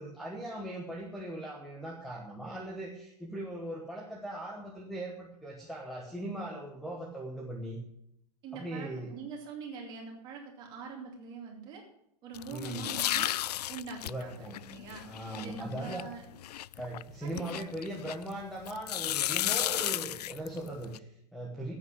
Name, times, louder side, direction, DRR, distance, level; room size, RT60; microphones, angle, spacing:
voice 1, 0.0-7.8 8.5-9.1 12.5-12.9 14.1-14.6 15.0-16.1 16.7-21.7, right 1 dB, ahead, -2 dB, 1.1 m, -39 dB
voice 2, 8.4-11.8 12.2-13.3 13.7-15.0 15.4-16.2 17.2-17.6, right 5 dB, 20° right, 1 dB, 2.7 m, -43 dB
sound 1, 12.3-18.3 18.7-21.0, left 13 dB, 75° left, 0.4 m, -34 dB
10.0 x 8.6 x 9.7 m, 0.77 s
supercardioid pair, 175°, 20 cm